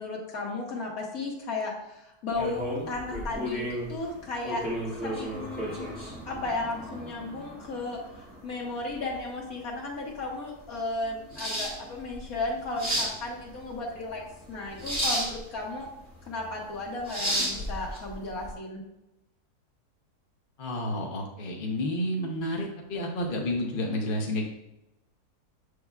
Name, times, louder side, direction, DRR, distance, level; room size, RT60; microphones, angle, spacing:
voice 1, 0.0-4.6 5.0-5.9 6.3-14.2 14.5-15.9 16.2-18.8, left 2 dB, 60° left, -2 dB, 1.8 m, -34 dB
sound 1, 2.3-18.5, equal, 5° right, 2.0 m, -34 dB
voice 2, 20.6-24.4, left 1 dB, 40° left, 0 dB, 0.8 m, -30 dB
6.9 x 6.5 x 2.4 m, 0.91 s
omnidirectional pair, 1.7 m